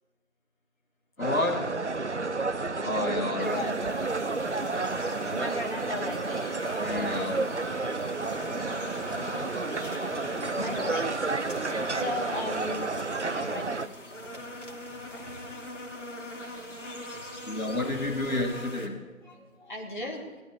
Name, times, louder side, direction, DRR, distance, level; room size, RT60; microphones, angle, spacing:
voice 1, 1.2-1.7 2.8-3.6 6.8-7.5 17.5-19.0, left 2 dB, 80° left, 1 dB, 2.7 m, -30 dB
sound 1, 1.2-13.9, right 3 dB, 55° right, 0.6 m, -31 dB
voice 2, 3.0-4.0 5.3-7.0 9.4-12.9 13.2-14.4 15.1-15.3 19.2-20.4, left 1 dB, 35° left, -3 dB, 1.5 m, -38 dB
sound 2, 3.4-18.9, left 1 dB, 60° left, 2.7 m, -41 dB
18.0 x 12.5 x 4.7 m, 1.4 s
figure-of-eight pair, 175°, 41 cm